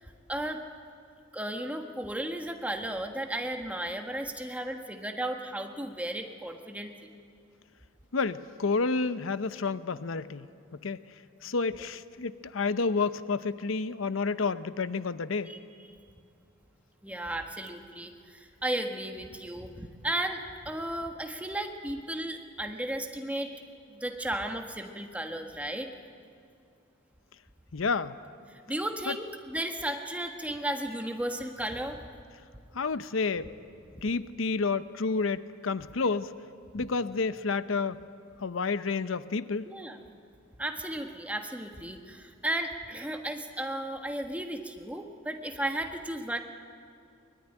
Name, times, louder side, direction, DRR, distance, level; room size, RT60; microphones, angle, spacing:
voice 1, 0.0-0.6 1.3-7.1 15.4-15.6 17.0-23.5 23.9-25.9 28.5-32.0 36.8-36.9 39.7-40.0 40.6-46.4, right 1 dB, 5° right, 4 dB, 1.5 m, -34 dB
voice 2, 8.1-11.0 11.4-15.5 27.7-28.2 29.1-29.2 32.7-33.5 34.0-36.3 36.7-38.0 38.4-39.7, left 4 dB, 90° left, 14 dB, 0.7 m, -30 dB
23.5 x 21.5 x 10.0 m, 2.4 s
head